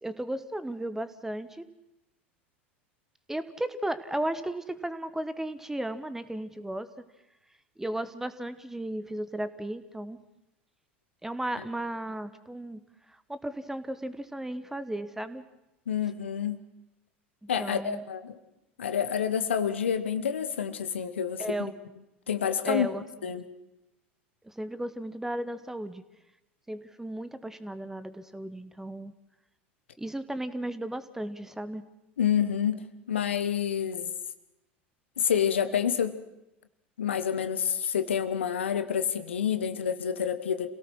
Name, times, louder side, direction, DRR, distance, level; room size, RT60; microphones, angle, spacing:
voice 1, 0.0-1.6 3.3-7.0 7.8-10.2 11.2-12.8 13.3-15.4 17.4-18.0 21.4-21.8 22.6-23.0 24.4-26.0 26.7-29.1 30.0-31.9, right 1 dB, 5° right, 13 dB, 1.3 m, -35 dB
voice 2, 15.9-16.6 17.5-18.3 18.8-21.7 22.3-22.9 23.2-23.4 32.2-34.1 35.2-36.2 37.0-40.7, left 8 dB, 80° left, 11 dB, 1.3 m, -28 dB
27.5 x 17.5 x 6.2 m, 0.90 s
figure-of-eight pair, 80°, 6 cm